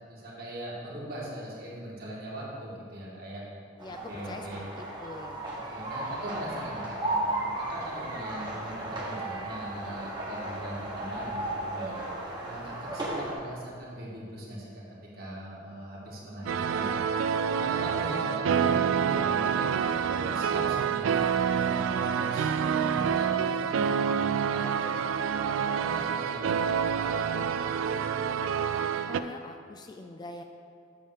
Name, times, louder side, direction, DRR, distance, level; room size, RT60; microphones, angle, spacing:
voice 1, 0.1-3.4 3.8-4.7 5.6-12.1 12.5-17.2 17.5-19.7 20.1-21.3 21.7-27.5, right 1 dB, 50° right, -5 dB, 1.9 m, -40 dB
voice 2, 3.8-5.5 29.1-30.4, left 2 dB, 20° left, 5 dB, 0.3 m, -43 dB
sound 1, 3.8-13.3, right 1 dB, 25° right, 1.2 m, -35 dB
sound 2, 16.5-29.2, right 7 dB, 85° right, 0.3 m, -27 dB
7.6 x 3.6 x 6.5 m, 2.3 s
head